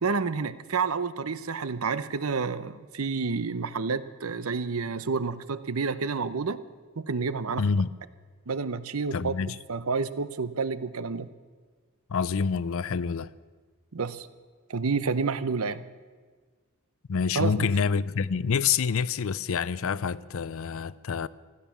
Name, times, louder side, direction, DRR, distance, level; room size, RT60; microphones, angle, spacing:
voice 1, 0.0-6.6 7.0-7.6 8.5-11.3 13.9-14.3 14.7-15.8 17.4-17.7, right 4 dB, 75° right, 0.8 m, -29 dB
voice 2, 7.6-7.9 9.1-9.6 12.1-13.3 17.1-21.3, left 6 dB, 70° left, 0.5 m, -27 dB
15.5 x 13.0 x 7.2 m
head